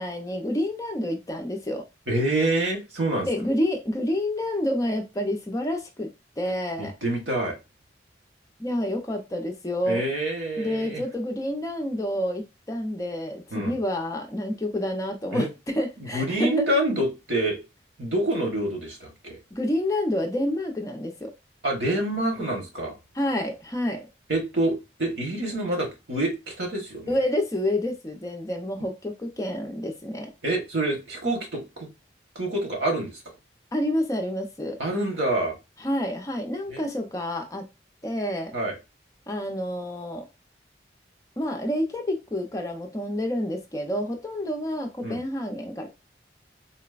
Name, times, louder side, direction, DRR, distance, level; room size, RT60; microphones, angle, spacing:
voice 1, 0.0-1.8 3.2-6.1 6.4-6.9 8.6-10.0 10.6-16.5 19.5-21.3 23.1-24.1 27.1-30.3 33.7-34.8 35.8-37.7 38.0-38.5 39.3-40.3 41.4-45.9, left 1 dB, 20° left, 3 dB, 0.5 m, -28 dB
voice 2, 2.1-3.3 6.8-7.6 9.9-11.0 13.5-13.8 15.3-15.5 16.0-17.6 18.0-19.4 21.6-23.0 24.3-27.2 30.4-31.9 32.3-33.2 34.8-35.6 36.7-36.8 38.5-38.7 45.0-45.2, right 1 dB, 90° right, 1 dB, 1.2 m, -27 dB
3.9 x 2.1 x 2.3 m, 0.25 s
head